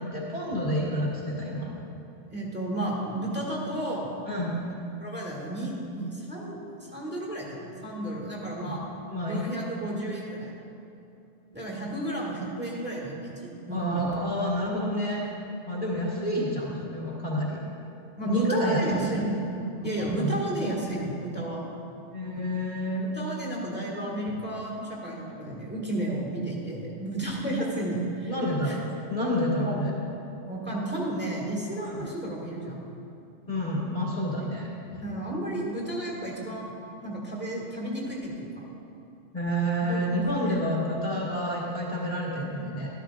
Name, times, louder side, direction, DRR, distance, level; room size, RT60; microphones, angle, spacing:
voice 1, 0.0-1.7 4.2-4.6 8.6-8.7 9.1-9.5 13.7-15.2 15.7-17.6 18.2-19.2 20.0-20.3 22.1-23.1 28.3-28.8 29.1-29.9 31.8-32.0 33.5-34.7 39.3-42.9, equal, 35° left, -7 dB, 1.6 m, -29 dB
voice 2, 2.3-4.1 5.0-6.6 6.9-8.8 9.3-10.5 11.5-14.0 18.2-19.4 19.8-21.6 23.2-28.4 28.6-28.8 29.7-29.8 30.4-32.9 34.4-34.5 35.0-36.7 37.0-38.6 39.9-40.1 40.5-40.8, right 1 dB, 10° right, -4 dB, 1.8 m, -32 dB
13.0 x 12.5 x 2.5 m, 2.8 s
omnidirectional pair, 1.2 m